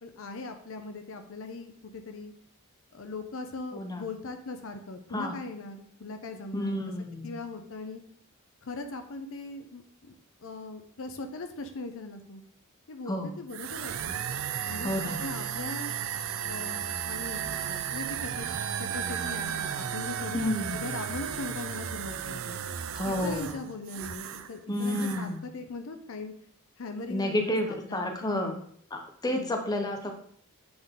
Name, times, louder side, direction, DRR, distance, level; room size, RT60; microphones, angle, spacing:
voice 1, 0.0-2.3 2.9-6.8 7.2-8.0 8.6-10.2 10.4-12.4 12.9-14.2 14.7-15.9 16.4-18.5 18.8-22.6 23.0-26.3 26.8-28.6 29.3-29.6, left 3 dB, 65° left, 7 dB, 0.6 m, -40 dB
voice 2, 3.7-4.1 5.1-5.4 6.5-7.4 13.1-13.3 14.8-15.2 20.3-20.8 22.9-23.6 24.7-25.4 27.1-28.6 28.9-30.1, left 1 dB, 15° left, 4 dB, 0.7 m, -30 dB
sound 1, 13.5-24.5 24.8-25.3, right 8 dB, 65° right, 0.4 m, -34 dB
7.8 x 3.9 x 3.6 m, 0.62 s
head